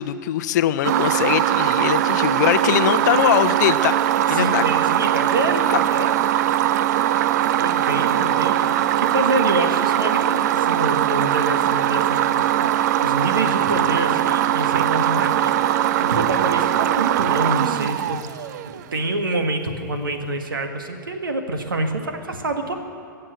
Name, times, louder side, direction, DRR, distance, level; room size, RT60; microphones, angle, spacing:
voice 1, 0.0-4.0 4.3-4.6, left 11 dB, 55° left, 13 dB, 0.6 m, -21 dB
sound 1, 0.8-18.8, right 12 dB, 55° right, 0.5 m, -20 dB
voice 2, 4.3-6.1 7.6-22.8, right 2 dB, 80° right, 5 dB, 1.7 m, -27 dB
21.5 x 7.7 x 7.9 m, 2.3 s
figure-of-eight pair, 105°, 11 cm